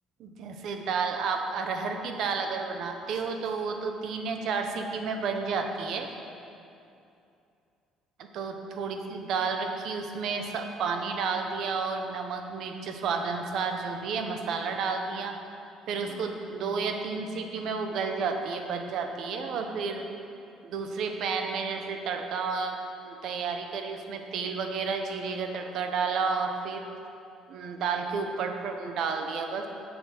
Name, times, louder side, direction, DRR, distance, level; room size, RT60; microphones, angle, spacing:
voice 1, 0.2-6.1 8.2-15.4 15.9-20.0 20.6-26.9 27.5-29.7, right 5 dB, 60° right, 5 dB, 0.8 m, -31 dB
7.4 x 6.9 x 5.9 m, 2.6 s
cardioid pair, 150°, 0 cm